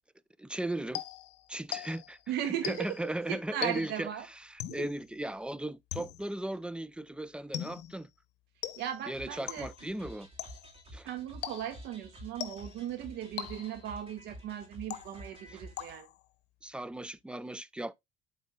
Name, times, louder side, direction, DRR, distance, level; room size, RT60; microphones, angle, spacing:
voice 1, 0.4-1.0 1.5-2.2 2.4-4.1 4.4-8.1 9.1-10.3 10.9-11.1 15.5-15.6 16.6-17.9, right 1 dB, 5° right, 0.4 m, -37 dB
sound 1, 0.9-2.2 2.6-3.1 3.6-4.1 4.6-5.0 5.9-6.4 7.5-8.0 8.6-9.1 9.5-9.9 10.4-10.8 11.4-11.9 12.4-12.8 13.4-13.9 14.9-15.4 15.8-16.3, left 13 dB, 85° left, 0.9 m, -41 dB
voice 2, 2.3-3.0 3.3-4.3 4.7-4.9 8.8-9.7 11.0-16.1, right 10 dB, 85° right, 1.8 m, -37 dB
sound 2, 9.1-16.0, equal, 30° right, 2.7 m, -50 dB
11.5 x 4.0 x 2.3 m
cardioid pair, 110°, 17 cm